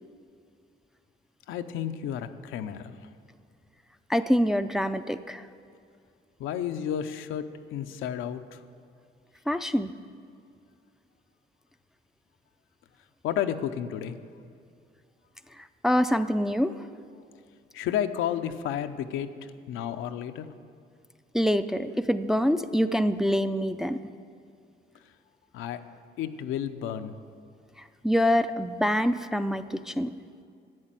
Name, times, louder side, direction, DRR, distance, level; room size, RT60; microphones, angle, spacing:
voice 1, 1.5-3.1 6.4-8.6 13.2-14.2 17.7-20.5 25.5-25.8 26.2-27.2, left 9 dB, 90° left, 8 dB, 0.6 m, -32 dB
voice 2, 4.1-5.5 9.5-9.9 15.8-16.7 21.3-24.0 28.0-30.1, equal, ahead, 9 dB, 0.4 m, -25 dB
11.0 x 8.0 x 7.5 m, 2.4 s
cardioid pair, 90°, 20 cm